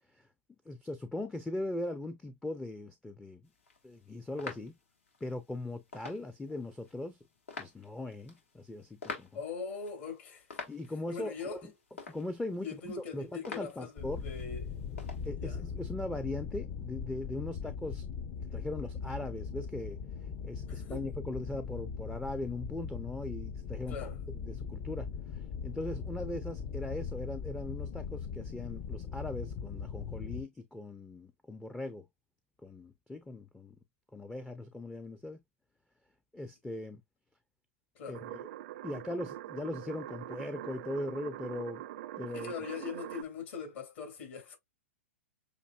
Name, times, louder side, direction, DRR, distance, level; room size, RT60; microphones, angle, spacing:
voice 1, 0.7-3.4 3.8-4.8 5.2-7.2 7.6-9.3 10.7-11.7 12.1-14.2 15.2-18.1 18.5-20.0 20.4-24.0 24.4-32.1 32.6-33.8 34.1-35.4 36.3-37.0 38.1-38.4 38.8-41.8 42.2-42.5, left 1 dB, 5° left, 0.5 m, -39 dB
sound 1, 3.5-15.3, left 4 dB, 80° left, 2.2 m, -49 dB
voice 2, 9.3-10.6 11.1-11.7 12.6-14.7 15.4-15.6 20.7-21.0 23.9-24.2 37.9-38.2 42.3-44.6, left 5 dB, 60° left, 2.8 m, -41 dB
sound 2, 14.0-30.4, left 6 dB, 35° left, 0.8 m, -40 dB
sound 3, 38.1-43.2, right 13 dB, 60° right, 0.5 m, -43 dB
6.5 x 2.6 x 2.4 m
hypercardioid pair, 120°, 7 cm